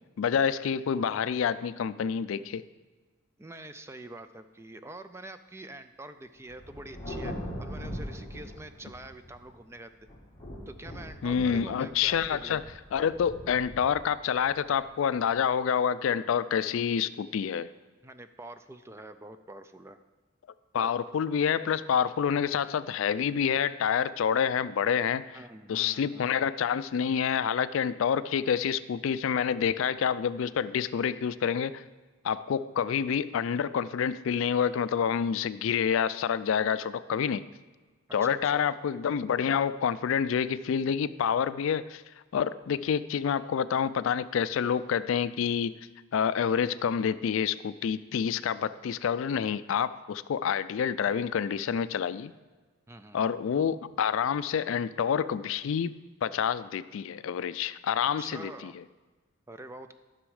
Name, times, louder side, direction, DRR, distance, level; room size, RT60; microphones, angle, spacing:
voice 1, 0.2-2.6 11.2-12.6 12.9-17.7 20.7-25.4 25.7-31.8 32.2-37.5 38.1-42.0 42.3-45.8 46.1-52.3 53.1-58.7, left 7 dB, 65° left, 15 dB, 0.3 m, -28 dB
voice 2, 3.4-9.9 10.7-12.6 18.0-20.0 25.3-26.3 38.2-38.7 52.9-53.2 58.2-58.8 59.5-59.9, right 1 dB, 10° right, 10 dB, 0.4 m, -45 dB
Thunder, 6.5-9.6 10.0-15.4, equal, 20° left, 2.2 m, -41 dB
13.5 x 6.2 x 4.8 m, 1.3 s
head